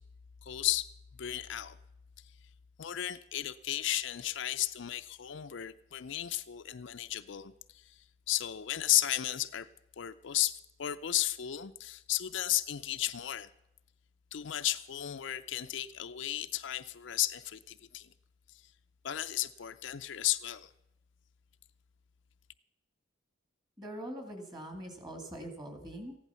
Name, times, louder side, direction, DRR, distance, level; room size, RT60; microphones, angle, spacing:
voice 1, 0.4-0.9 1.2-1.8 2.8-7.5 7.9-8.0 8.3-9.7 10.0-13.5 14.3-18.1 19.0-20.7, left 13 dB, 60° left, 0.5 m, -34 dB
voice 2, 23.8-26.2, right 1 dB, 20° right, 2.2 m, -43 dB
15.0 x 11.0 x 5.7 m
head